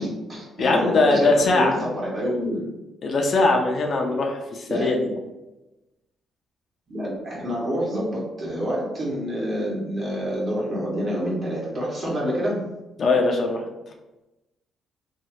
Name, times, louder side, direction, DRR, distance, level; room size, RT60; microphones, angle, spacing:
voice 1, 0.0-2.6 4.7-5.1 6.9-12.6, equal, 45° right, -4 dB, 1.2 m, -27 dB
voice 2, 0.6-1.8 3.0-5.0 13.0-13.6, left 2 dB, 50° left, 2 dB, 0.5 m, -21 dB
2.8 x 2.3 x 3.0 m, 1.0 s
cardioid pair, 90°, 0 cm